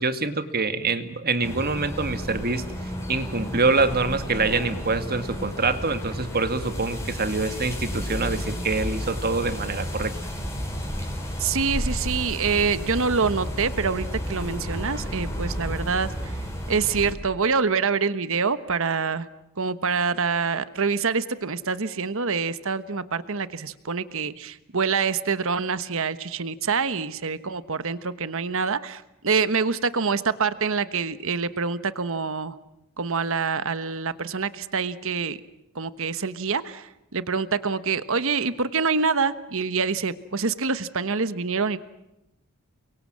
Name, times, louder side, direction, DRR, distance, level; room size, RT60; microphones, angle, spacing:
voice 1, 0.0-2.6 3.1-10.1, right 3 dB, 45° right, 9 dB, 2.0 m, -25 dB
sound 1, 1.4-17.1, equal, 15° left, 5.1 m, -32 dB
voice 2, 11.4-16.4 16.7-19.3 19.6-32.6 33.0-35.4 35.7-41.8, right 5 dB, 65° right, 13 dB, 1.2 m, -26 dB
30.0 x 23.5 x 7.5 m, 0.89 s
head